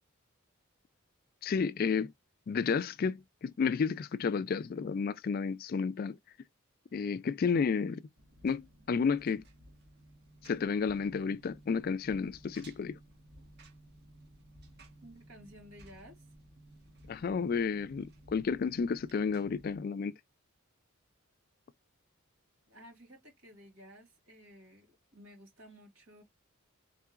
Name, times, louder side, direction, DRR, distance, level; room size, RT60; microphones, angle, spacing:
voice 1, 1.4-2.1 2.5-6.2 6.9-8.0 8.4-9.4 10.4-13.0 17.1-20.1, left 5 dB, 45° left, 0.3 m, -31 dB
Engine, 8.2-19.8, right 1 dB, 50° right, 1.6 m, -57 dB
voice 2, 15.0-16.3 22.7-26.2, equal, 80° right, 2.8 m, -54 dB
4.5 x 3.7 x 2.4 m
head